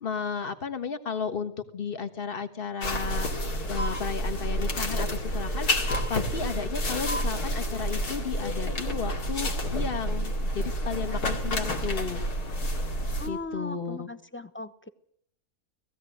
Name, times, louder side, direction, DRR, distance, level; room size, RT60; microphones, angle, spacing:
voice 1, 0.0-3.3 3.7-12.2 13.3-14.1, left 6 dB, 35° left, 10 dB, 1.5 m, -34 dB
sound 1, 2.8-13.3, equal, 75° left, 2.8 m, -29 dB
voice 2, 13.2-14.9, left 2 dB, 15° left, 12 dB, 0.5 m, -38 dB
19.0 x 15.5 x 9.2 m, 0.68 s
omnidirectional pair, 1.7 m